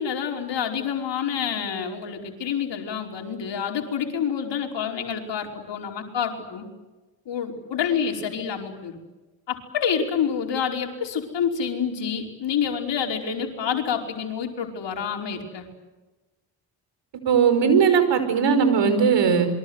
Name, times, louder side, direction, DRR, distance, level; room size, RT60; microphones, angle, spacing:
voice 1, 0.0-6.7 7.3-9.0 9.5-15.7, left 7 dB, 60° left, 2 dB, 5.1 m, -28 dB
voice 2, 17.2-19.5, right 6 dB, 60° right, 9 dB, 5.4 m, -19 dB
27.5 x 23.5 x 8.1 m, 1.2 s
hypercardioid pair, 50°, 48 cm